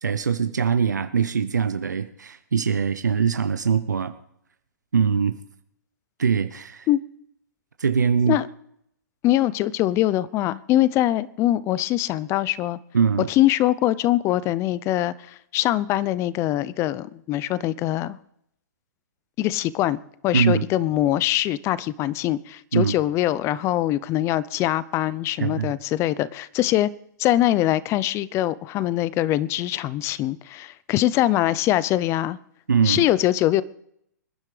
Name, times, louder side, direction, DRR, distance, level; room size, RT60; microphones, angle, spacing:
voice 1, 0.0-4.1 4.9-5.4 6.2-6.9 7.8-8.4 12.9-13.3 20.3-20.6 22.7-22.9 25.4-25.7 32.7-33.1, right 6 dB, 85° right, 10 dB, 0.9 m, -22 dB
voice 2, 9.2-12.8 13.3-18.2 19.4-26.9 27.2-32.4 32.8-33.6, left 14 dB, 30° left, 19 dB, 0.6 m, -23 dB
25.0 x 10.5 x 3.4 m, 0.74 s
hypercardioid pair, 120°, 9 cm